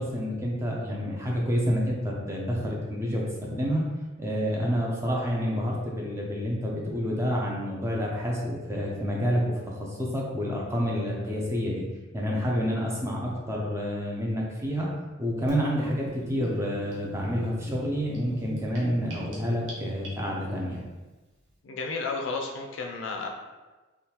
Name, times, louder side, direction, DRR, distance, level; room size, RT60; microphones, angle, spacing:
voice 1, 0.0-3.8 4.2-11.9 12.1-14.9 15.2-20.8, equal, 15° right, -3 dB, 0.5 m, -29 dB
Gurgling / Bathtub (filling or washing), 15.5-20.5, right 2 dB, 65° right, 0.9 m, -40 dB
voice 2, 21.6-23.3, left 3 dB, 70° left, 2 dB, 0.5 m, -32 dB
3.5 x 2.3 x 2.8 m, 1.2 s
head